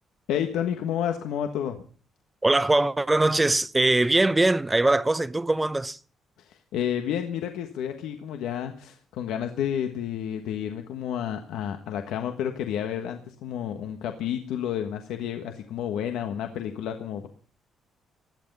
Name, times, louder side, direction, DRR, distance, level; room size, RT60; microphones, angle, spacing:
voice 1, 0.3-1.8 6.4-17.3, left 9 dB, 90° left, 1.4 m, -30 dB
voice 2, 2.4-6.0, right 2 dB, 15° right, 0.7 m, -22 dB
17.0 x 12.0 x 5.5 m
cardioid pair, 90°, 0 cm